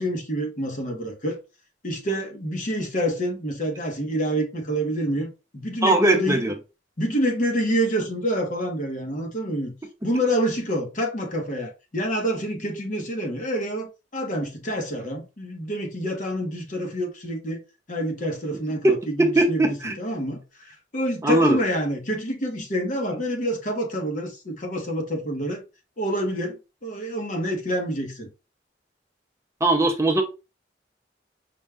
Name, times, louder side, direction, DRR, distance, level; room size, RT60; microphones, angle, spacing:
voice 1, 0.0-1.4 1.8-6.4 7.0-9.7 10.0-17.6 17.9-20.4 20.9-25.6 26.0-28.3, equal, 45° left, 1.1 m, -27 dB
voice 2, 5.8-6.5 18.8-19.9 21.2-21.6 29.6-30.2, right 2 dB, 15° right, 0.5 m, -20 dB
5.2 x 2.3 x 3.4 m
head